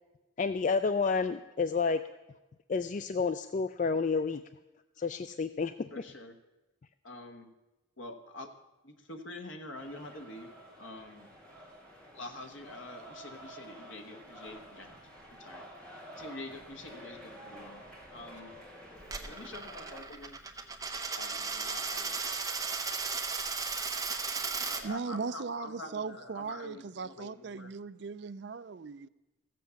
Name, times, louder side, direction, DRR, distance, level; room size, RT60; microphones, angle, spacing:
voice 1, 0.4-2.0 2.7-4.4 5.0-5.9, left 4 dB, 40° left, 0.3 m, -30 dB
voice 2, 5.9-6.4 7.0-7.5 8.0-8.5 8.8-10.5 10.8-11.3 12.1-15.0 15.3-15.7 16.2-17.8 18.1-18.6 19.3-20.4 21.1-22.4 22.8-22.9 24.7-27.7, left 2 dB, 75° left, 1.4 m, -46 dB
sound 1, 9.7-20.0, right 1 dB, 5° left, 2.1 m, -50 dB
Coin (dropping), 19.0-24.8, right 4 dB, 15° right, 0.9 m, -35 dB
voice 3, 24.8-29.1, right 4 dB, 60° right, 0.4 m, -38 dB
15.0 x 7.6 x 7.0 m
head